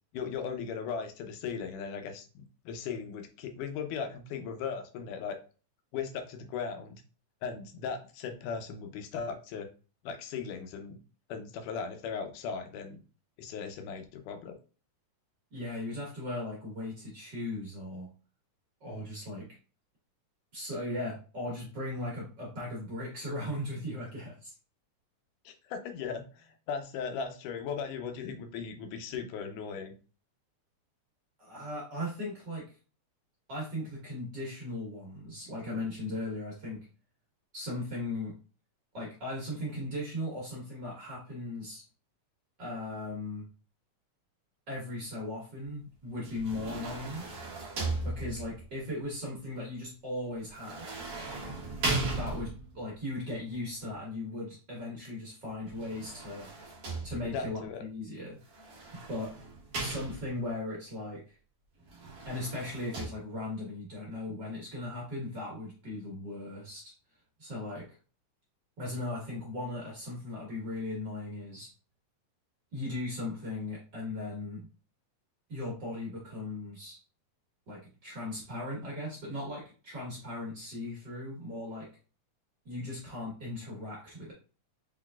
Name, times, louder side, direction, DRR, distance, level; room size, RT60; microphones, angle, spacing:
voice 1, 0.1-5.4 5.9-7.0 7.4-9.7 10.0-11.0 11.3-13.0 13.4-14.6 25.5-29.9 57.2-57.8, left 6 dB, 85° left, 6 dB, 2.2 m, -38 dB
voice 2, 15.5-18.1 18.8-19.5 20.5-24.5 31.4-32.6 33.5-36.8 37.5-38.3 38.9-41.8 42.6-43.5 44.7-47.3 48.0-50.9 52.0-56.5 57.0-58.4 59.1-59.3 59.8-61.3 62.2-66.9 67.4-67.9 68.8-71.7 72.7-74.7 75.5-77.0 77.7-81.9 82.6-84.3, left 1 dB, 45° right, -4 dB, 1.6 m, -38 dB
sound 1, 46.2-48.7 50.5-52.8 55.7-57.5 58.5-60.5 61.9-63.1, right 2 dB, 85° right, 0.8 m, -37 dB
5.1 x 3.9 x 2.3 m, 0.36 s
omnidirectional pair, 3.6 m